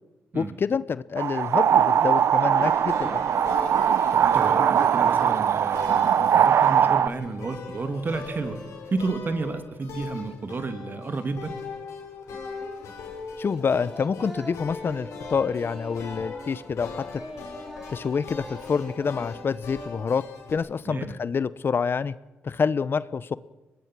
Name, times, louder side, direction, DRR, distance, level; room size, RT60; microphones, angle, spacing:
voice 1, 0.3-3.2 13.4-17.2 17.9-20.2 20.5-22.1 22.4-23.4, left 6 dB, 50° left, 17 dB, 0.8 m, -27 dB
sound 1, 1.2-7.1, right 8 dB, 70° right, 0.8 m, -21 dB
sound 2, 2.6-20.5, left 4 dB, 85° left, 5.7 m, -40 dB
voice 2, 4.1-8.6 8.9-11.5 20.9-21.2, right 3 dB, 45° right, 9 dB, 2.5 m, -31 dB
Singing, 12.3-12.9 13.1-16.8 17.1-19.1, equal, 10° right, 5.0 m, -43 dB
23.5 x 20.0 x 6.2 m, 1.1 s
cardioid pair, 65°, 5 cm